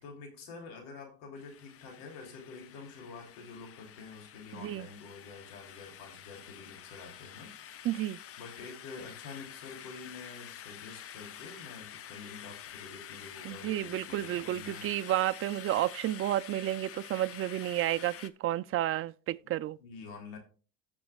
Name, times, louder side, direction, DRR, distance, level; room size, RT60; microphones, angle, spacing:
voice 1, 0.0-7.6 8.4-14.9 19.4-19.5 19.8-20.4, left 4 dB, 70° left, 3.0 m, -47 dB
sound 1, 1.4-18.3, left 10 dB, 35° left, 0.6 m, -48 dB
voice 2, 4.5-4.9 7.8-8.2 13.4-19.8, right 13 dB, 35° right, 0.4 m, -31 dB
17.5 x 6.1 x 2.3 m
supercardioid pair, 95°, 40 cm